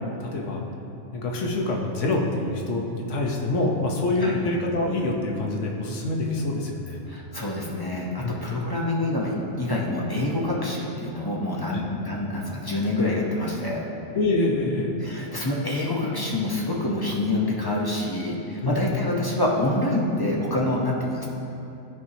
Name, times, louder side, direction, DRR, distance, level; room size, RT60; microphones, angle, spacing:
voice 1, 0.2-0.6 1.1-7.0 8.2-8.3 11.7-11.8 14.1-14.9 18.5-18.8, left 2 dB, 75° left, 0 dB, 1.2 m, -26 dB
voice 2, 7.1-13.8 15.0-21.3, left 1 dB, 20° left, -4 dB, 0.7 m, -26 dB
12.5 x 4.6 x 2.8 m, 2.8 s
omnidirectional pair, 1.3 m